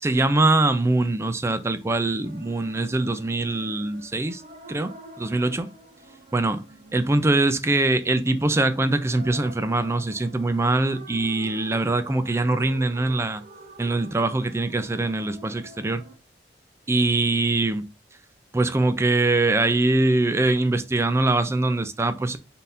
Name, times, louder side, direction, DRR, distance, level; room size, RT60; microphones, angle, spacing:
voice 1, 0.0-4.4 4.7-4.9 5.2-5.7 6.3-6.6 6.9-13.4 13.8-16.0 16.9-17.9 18.5-22.4, right 2 dB, 15° right, 0.3 m, -23 dB
sound 1, 2.2-16.2, right 1 dB, 40° right, 0.7 m, -46 dB
4.4 x 3.5 x 2.5 m
head